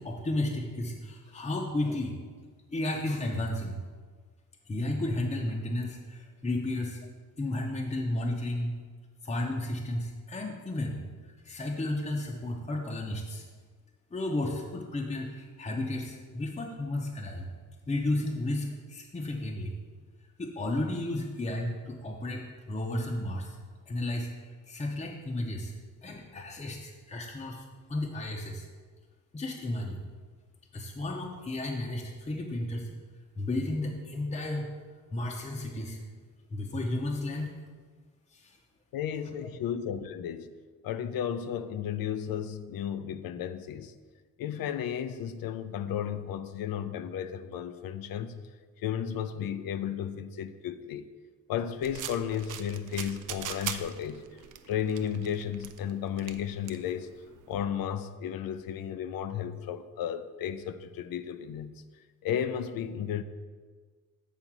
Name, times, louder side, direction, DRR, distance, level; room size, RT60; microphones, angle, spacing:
voice 1, 0.0-2.2 2.7-3.8 4.7-7.0 7.4-8.7 9.2-11.0 11.4-13.5 14.1-17.5 17.9-19.7 20.4-23.6 23.9-25.7 26.0-28.7 29.3-30.0 30.7-32.9 33.4-34.7 35.1-36.0 36.5-37.5 38.3-38.6 39.4-39.5, left 1 dB, 20° left, 0.6 m, -33 dB
voice 2, 38.9-40.6 40.8-43.9 44.4-48.4 48.8-51.1 51.5-54.3 54.7-57.1 57.5-61.8 62.2-63.2, left 9 dB, 90° left, 0.5 m, -33 dB
sound 1, 51.8-57.7, right 9 dB, 65° right, 0.5 m, -42 dB
7.4 x 3.9 x 6.0 m
wide cardioid pair, 125°, 33 cm